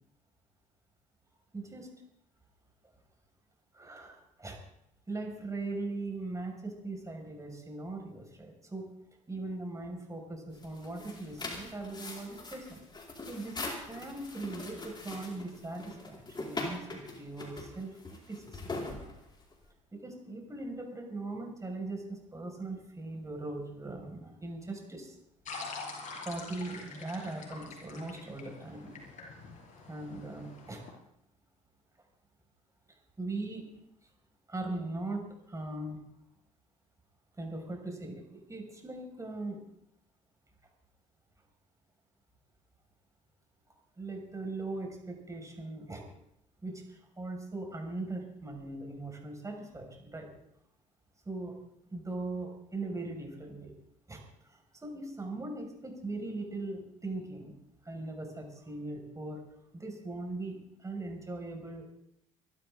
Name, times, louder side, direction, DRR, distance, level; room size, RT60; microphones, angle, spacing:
voice 1, 1.5-1.9 3.7-4.6 5.1-8.9 9.3-12.8 13.3-13.6 13.9-19.1 19.9-25.2 26.2-29.0 29.9-30.8 33.2-33.7 34.5-36.0 37.4-38.2 38.5-39.6 44.0-46.1 46.6-50.3 51.3-51.6 51.9-53.7 54.1-57.5 57.9-59.4 59.7-61.8, right 2 dB, 20° right, 2 dB, 5.4 m, -40 dB
sound 1, 10.5-19.7, left 2 dB, 25° left, 4.6 m, -42 dB
sound 2, 25.4-30.9, left 3 dB, 50° left, 5.6 m, -45 dB
25.0 x 12.5 x 3.7 m, 0.74 s
hypercardioid pair, 65°, 17 cm